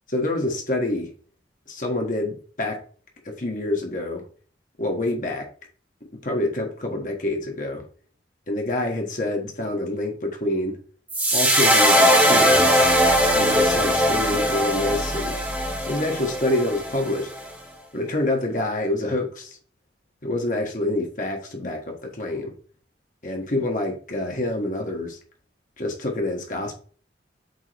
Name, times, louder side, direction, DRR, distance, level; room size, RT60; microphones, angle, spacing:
voice 1, 0.1-1.1 1.7-2.8 3.2-4.2 4.8-5.5 6.2-7.8 8.5-10.8 11.3-12.8 13.3-15.4 15.9-17.3 17.9-19.6 20.2-22.5 23.2-25.2 25.8-26.8, left 1 dB, 45° left, 1 dB, 1.3 m, -27 dB
sound 1, 11.1-17.4, equal, 10° right, 1.7 m, -20 dB
8.0 x 3.7 x 3.4 m, 0.42 s
head